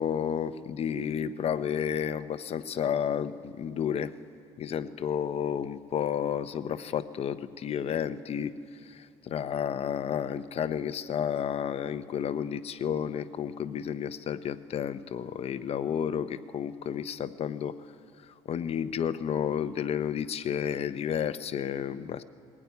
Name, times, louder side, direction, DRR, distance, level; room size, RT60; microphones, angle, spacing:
voice 1, 0.0-4.1 4.6-17.8 18.2-22.2, left 8 dB, 50° left, 13 dB, 0.8 m, -31 dB
21.0 x 16.0 x 9.6 m, 2.5 s
cardioid pair, 100°, 13 cm